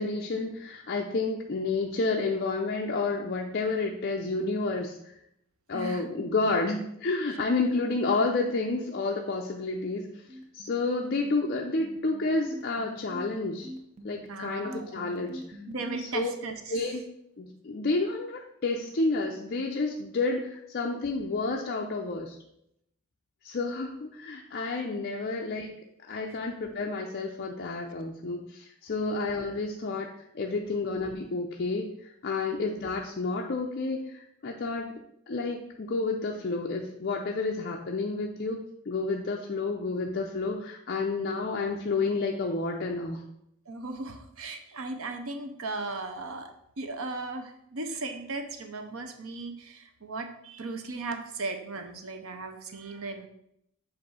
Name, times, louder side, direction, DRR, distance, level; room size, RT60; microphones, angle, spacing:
voice 1, 0.0-5.0 5.7-10.2 10.5-13.7 14.0-15.6 16.1-16.3 16.7-17.0 17.4-22.4 23.4-25.8 26.1-34.9 35.3-43.2, left 3 dB, 50° left, 1 dB, 0.5 m, -30 dB
voice 2, 5.7-6.6 14.3-15.0 15.7-16.8 43.7-46.5 46.8-53.3, right 3 dB, 75° right, 6 dB, 0.7 m, -37 dB
sound 1, 9.6-16.0, left 1 dB, 30° right, 0.7 m, -44 dB
7.8 x 2.6 x 5.5 m, 0.77 s
head